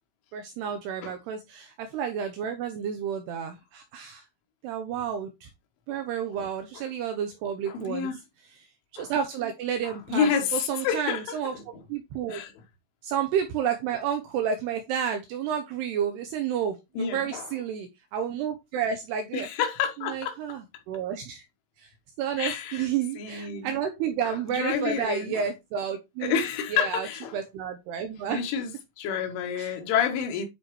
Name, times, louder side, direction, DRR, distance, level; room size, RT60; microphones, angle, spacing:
voice 1, 0.3-4.2 4.6-5.5 5.9-8.1 8.6-8.7 8.9-12.4 13.0-19.5 20.0-21.4 21.8-21.9 22.2-26.4 26.7-27.1 27.3-28.4 29.6-29.8, right 8 dB, 85° right, 2.4 m, -31 dB
voice 2, 7.7-8.2 9.0-9.1 10.1-11.2 12.3-12.5 17.0-17.5 19.3-20.3 22.4-22.9 23.2-23.7 24.5-25.4 26.2-27.4 28.3-28.7 29.0-30.5, left 7 dB, 80° left, 3.7 m, -28 dB
9.9 x 4.3 x 3.2 m
omnidirectional pair, 5.6 m